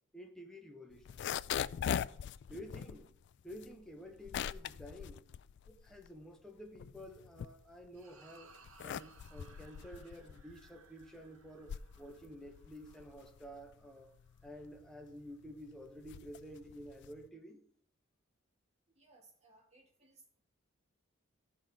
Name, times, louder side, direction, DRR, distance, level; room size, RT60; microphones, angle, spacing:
voice 1, 0.1-1.3 2.5-3.1 3.4-5.3 5.7-8.6 8.8-14.1 14.4-17.6, equal, 5° left, 1.1 m, -51 dB
sound 1, 0.9-6.2 6.6-8.0 8.5-17.3, left 9 dB, 60° left, 0.3 m, -42 dB
sound 2, 7.9-14.5, right 4 dB, 90° right, 1.0 m, -63 dB
voice 2, 18.9-20.4, right 3 dB, 35° right, 2.3 m, -64 dB
14.5 x 5.9 x 3.6 m
head